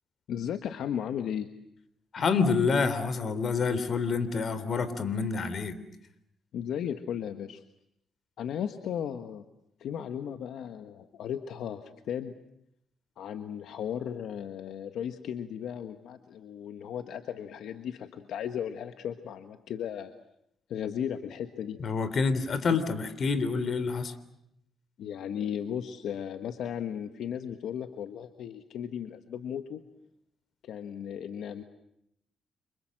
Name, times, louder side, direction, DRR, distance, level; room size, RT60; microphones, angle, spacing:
voice 1, 0.3-1.5 6.5-7.6 8.4-9.4 9.8-12.4 13.2-20.1 20.7-21.8 22.7-22.8 25.0-29.8 30.6-31.6, left 9 dB, 75° left, 8 dB, 1.4 m, -35 dB
voice 2, 2.1-5.7 21.8-24.1, left 4 dB, 50° left, 14 dB, 3.3 m, -27 dB
29.5 x 26.0 x 7.7 m, 0.78 s
cardioid pair, 90°, 0 cm